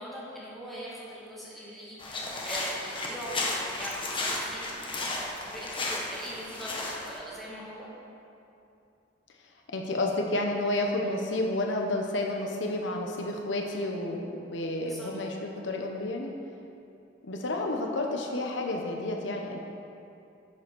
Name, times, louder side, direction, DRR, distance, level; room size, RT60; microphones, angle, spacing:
voice 1, 0.0-7.9 14.9-15.1, equal, ahead, -7 dB, 2.4 m, -41 dB
sound 1, 2.0-7.2, left 2 dB, 25° left, 1.3 m, -34 dB
voice 2, 9.7-16.3 17.2-19.6, left 2 dB, 75° left, 1 dB, 1.0 m, -30 dB
10.0 x 7.8 x 6.2 m, 2.7 s
head